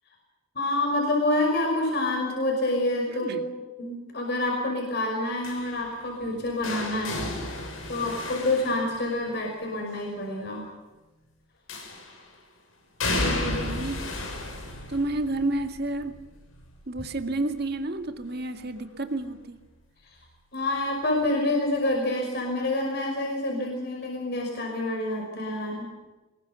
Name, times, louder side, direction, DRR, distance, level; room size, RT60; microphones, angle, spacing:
voice 1, 0.5-3.5 3.8-10.6 13.2-13.8 20.0-20.2 20.5-25.9, left 2 dB, 55° left, 0 dB, 5.5 m, -28 dB
sound 1, 5.4-9.5 11.7-12.3 13.0-18.8 19.2-19.6 20.8-20.9, left 2 dB, 85° left, 6.6 m, -34 dB
voice 2, 13.4-14.0 14.9-16.2 16.9-19.6, right 2 dB, 50° right, 7 dB, 2.0 m, -30 dB
25.0 x 21.5 x 6.9 m, 1.2 s
head